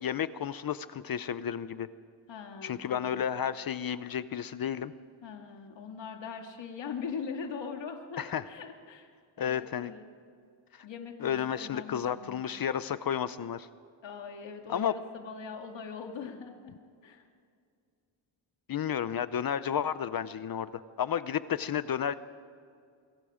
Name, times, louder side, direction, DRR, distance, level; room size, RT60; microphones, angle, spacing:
voice 1, 0.0-1.9 2.6-4.9 8.2-8.4 9.4-9.9 10.7-10.9 11.2-13.7 14.7-14.9 18.7-22.1, left 9 dB, 45° left, 14 dB, 0.7 m, -32 dB
voice 2, 2.3-3.2 5.2-9.1 9.4-10.1 10.8-12.5 14.0-16.7 17.0-17.3, left 6 dB, 60° left, 3 dB, 2.5 m, -41 dB
27.0 x 22.0 x 5.1 m, 2.2 s
cardioid pair, 135°, 48 cm